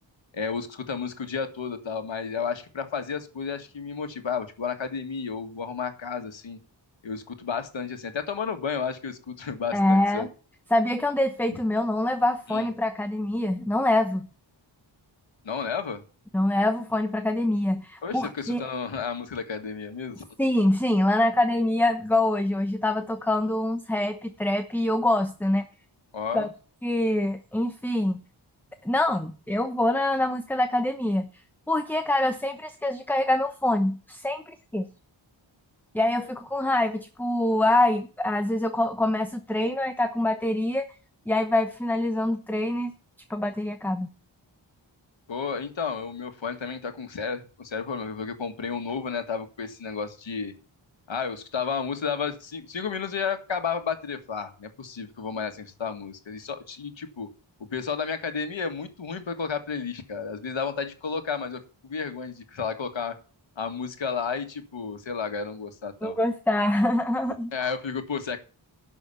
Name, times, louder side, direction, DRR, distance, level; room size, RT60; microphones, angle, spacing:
voice 1, 0.3-6.6 7.0-10.3 11.5-11.6 12.5-12.7 15.4-16.0 18.0-20.3 26.1-26.5 45.3-50.5 51.1-57.3 57.7-63.1 63.6-66.1 67.5-68.4, left 6 dB, 75° left, 7 dB, 1.8 m, -32 dB
voice 2, 9.7-10.3 10.7-14.3 16.3-18.6 20.4-25.7 26.3-26.5 26.8-28.2 28.8-31.3 31.7-34.9 35.9-40.8 41.3-42.9 43.3-44.1 66.0-67.7, left 1 dB, 5° left, 7 dB, 0.9 m, -25 dB
11.0 x 6.3 x 6.9 m, 0.36 s
wide cardioid pair, 105°, 46 cm